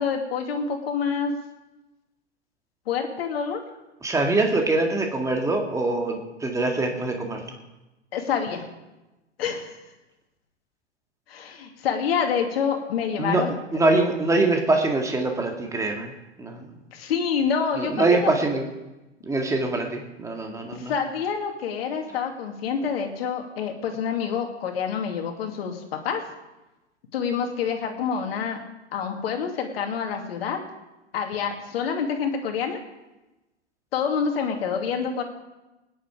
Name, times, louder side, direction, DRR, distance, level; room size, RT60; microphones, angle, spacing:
voice 1, 0.0-1.3 2.9-3.6 8.1-8.6 9.4-9.7 11.3-13.5 16.9-18.3 20.8-26.2 27.1-28.6 28.9-30.7 31.1-32.8 33.9-35.2, left 6 dB, 55° left, 4 dB, 2.4 m, -27 dB
voice 2, 4.0-7.4 13.2-13.4 13.7-16.1 16.4-16.6 17.8-18.7 19.2-20.9, right 2 dB, 10° right, 2 dB, 2.0 m, -24 dB
20.0 x 10.0 x 4.9 m, 1.0 s
figure-of-eight pair, 100°, 35 cm